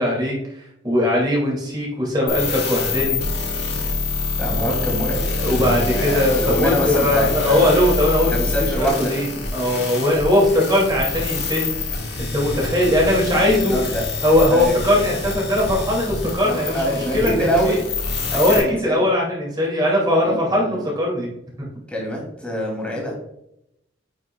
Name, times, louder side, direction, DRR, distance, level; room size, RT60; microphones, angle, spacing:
voice 1, 0.0-3.2 5.4-11.7 12.3-13.8 14.2-16.8 17.1-17.8 18.3-21.3 21.6-21.7, left 1 dB, 25° right, -3 dB, 2.6 m, -20 dB
sound 1, 2.3-18.6, left 3 dB, 60° left, 2.6 m, -26 dB
voice 2, 4.4-5.2 5.8-7.7 8.2-9.1 13.3-14.1 14.5-14.8 16.4-17.8 18.3-19.0 20.2-20.8 21.9-23.1, equal, 5° left, -2 dB, 2.8 m, -25 dB
9.0 x 6.3 x 2.4 m, 0.80 s
head